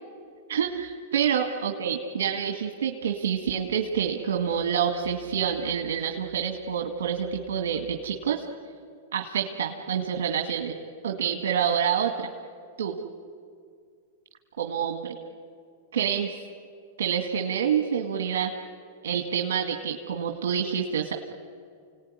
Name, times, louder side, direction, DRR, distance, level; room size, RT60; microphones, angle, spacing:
voice 1, 0.5-8.4 9.1-10.8 11.0-12.3 12.8-13.0 14.6-15.2 15.9-16.4 17.0-18.5 19.0-21.1, right 8 dB, 80° right, 3 dB, 2.0 m, -27 dB
29.5 x 19.0 x 9.8 m, 2.2 s
hypercardioid pair, 115°, 0 cm